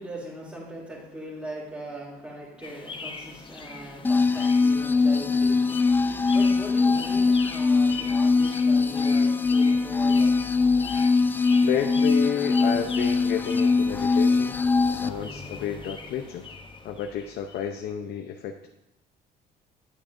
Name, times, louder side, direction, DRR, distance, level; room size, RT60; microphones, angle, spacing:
voice 1, 0.0-10.5, right 1 dB, 5° right, -10 dB, 2.9 m, -40 dB
sound 1, 2.6-17.8, left 4 dB, 30° left, 0.9 m, -41 dB
sound 2, 4.0-15.1, left 4 dB, 10° left, 0.3 m, -22 dB
voice 2, 11.6-14.6 14.9-16.4 16.8-18.7, left 8 dB, 75° left, 4 dB, 0.7 m, -31 dB
10.5 x 8.6 x 2.6 m, 0.86 s
cardioid pair, 110°, 17 cm